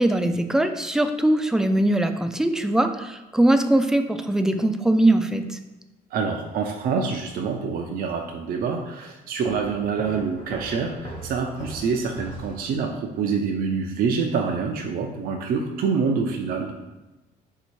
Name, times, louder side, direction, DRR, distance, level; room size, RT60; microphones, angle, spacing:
voice 1, 0.0-5.6, right 1 dB, 5° right, 7 dB, 0.3 m, -21 dB
voice 2, 6.1-16.7, right 5 dB, 60° right, 3 dB, 0.5 m, -26 dB
sound 1, 9.4-13.1, right 1 dB, 30° left, 1.1 m, -39 dB
4.0 x 2.8 x 4.5 m, 1.1 s
cardioid pair, 110°, 17 cm